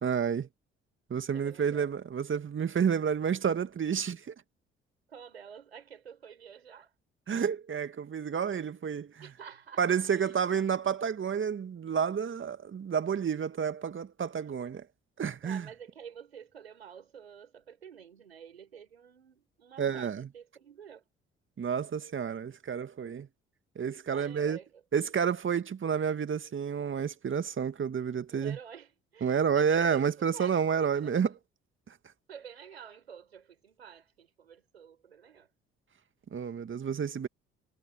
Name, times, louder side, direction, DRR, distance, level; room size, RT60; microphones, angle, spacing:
voice 1, 0.0-0.5 1.1-4.3 7.3-9.1 9.8-14.9 15.2-15.7 19.8-20.3 21.6-23.3 23.8-24.6 24.9-28.6 29.2-31.3 36.3-37.3, right 7 dB, 40° right, 2.1 m, -30 dB
voice 2, 1.3-1.9 5.1-6.9 9.2-10.7 15.4-21.0 24.1-24.8 28.3-31.4 32.3-35.5, right 8 dB, 90° right, 4.7 m, -50 dB
figure-of-eight pair, 45°, 30 cm